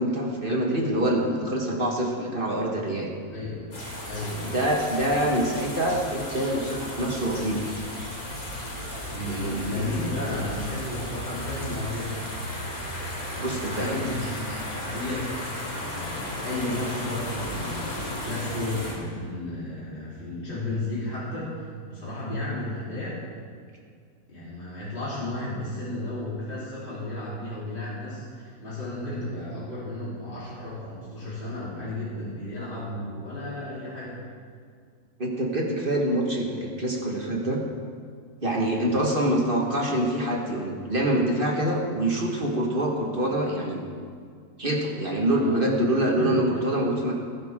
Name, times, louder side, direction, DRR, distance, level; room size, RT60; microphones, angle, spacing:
voice 1, 0.0-3.1 4.5-7.6 9.3-9.8 13.4-14.0 35.2-37.6 38.4-43.8 44.6-47.1, right 1 dB, 35° right, -1 dB, 1.7 m, -25 dB
voice 2, 3.3-3.6 4.0-4.6 9.1-12.2 13.3-15.7 15.9-23.2 24.3-34.2 38.7-39.0 45.4-45.6 46.2-46.4, left 1 dB, 35° left, -10 dB, 3.8 m, -33 dB
sound 1, 3.7-18.9, left 1 dB, 70° left, 3.6 m, -35 dB
20.0 x 10.5 x 3.7 m, 2.2 s
omnidirectional pair, 1.6 m